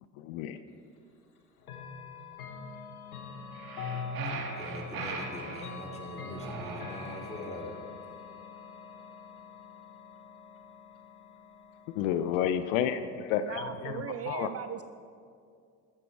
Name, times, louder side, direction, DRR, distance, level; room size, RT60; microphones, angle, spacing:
voice 1, 0.2-0.6 12.0-13.9 14.3-14.5, left 9 dB, 70° left, 10 dB, 0.7 m, -30 dB
Chime / Clock, 1.6-12.5, left 3 dB, 90° left, 1.3 m, -44 dB
sound 1, 3.5-5.7 6.4-7.6, right 3 dB, 55° right, 1.9 m, -40 dB
voice 2, 4.2-7.8, left 1 dB, 15° left, -1 dB, 2.7 m, -43 dB
voice 3, 13.4-14.8, right 9 dB, 35° right, 10 dB, 0.5 m, -38 dB
14.0 x 9.0 x 4.7 m, 2.3 s
hypercardioid pair, 65°, 42 cm